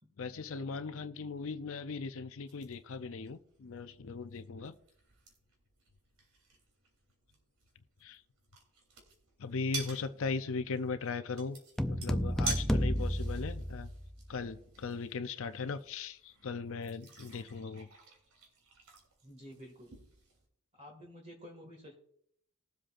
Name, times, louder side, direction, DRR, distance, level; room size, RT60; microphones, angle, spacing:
voice 1, 0.2-4.7 8.0-8.2 9.4-11.6 11.8-13.9 14.3-17.9, left 4 dB, 65° left, 0.6 m, -38 dB
sound 1, 2.5-20.5, right 3 dB, 85° right, 3.4 m, -48 dB
sound 2, 11.8-14.3, equal, 5° left, 0.5 m, -32 dB
voice 2, 19.2-20.0 20.7-21.9, equal, 35° right, 1.9 m, -51 dB
20.0 x 7.6 x 2.5 m
head